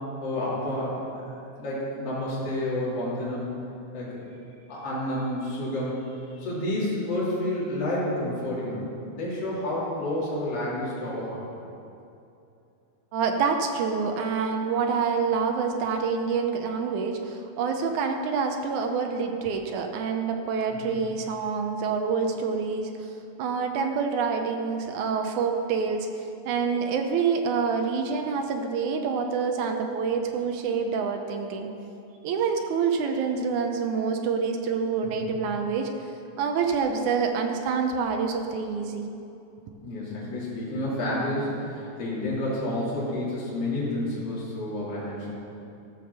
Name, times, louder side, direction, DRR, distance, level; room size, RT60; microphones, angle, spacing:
voice 1, 0.2-3.6 3.9-4.2 4.7-11.4 20.7-20.9 35.2-35.3 39.8-45.3, left 1 dB, 45° left, -8 dB, 3.7 m, -30 dB
voice 2, 13.1-31.7 32.2-35.9 36.4-39.1, right 5 dB, 75° right, 4 dB, 1.8 m, -27 dB
13.5 x 7.1 x 6.7 m, 2.7 s
omnidirectional pair, 4.2 m